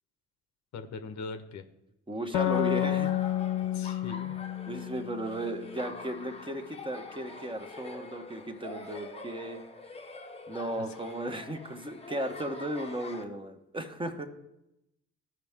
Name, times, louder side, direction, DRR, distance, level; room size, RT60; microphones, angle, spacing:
voice 1, 0.7-1.6 3.7-4.3 10.8-10.9, left 4 dB, 70° left, 8 dB, 0.9 m, -41 dB
voice 2, 2.1-3.2 4.7-9.6 10.5-14.3, right 1 dB, 15° right, 5 dB, 1.0 m, -35 dB
sound 1, 2.3-5.8, left 14 dB, 85° left, 0.5 m, -30 dB
Laughter, 2.3-13.2, left 3 dB, 20° left, 0.8 m, -45 dB
14.5 x 5.5 x 3.5 m, 0.87 s
cardioid pair, 90°, 30 cm